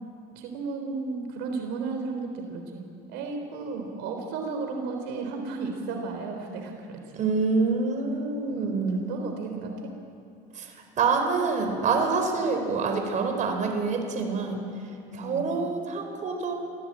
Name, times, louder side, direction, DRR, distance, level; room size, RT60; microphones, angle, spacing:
voice 1, 0.3-2.8 3.1-7.0 8.4-8.8 9.1-9.9 15.1-15.6, right 4 dB, 80° right, 3 dB, 3.6 m, -34 dB
voice 2, 7.1-9.1 10.5-10.7 11.0-14.7 15.1-16.5, right 4 dB, 45° right, 4 dB, 4.3 m, -26 dB
27.0 x 16.5 x 8.8 m, 2.6 s
cardioid pair, 110°, 18 cm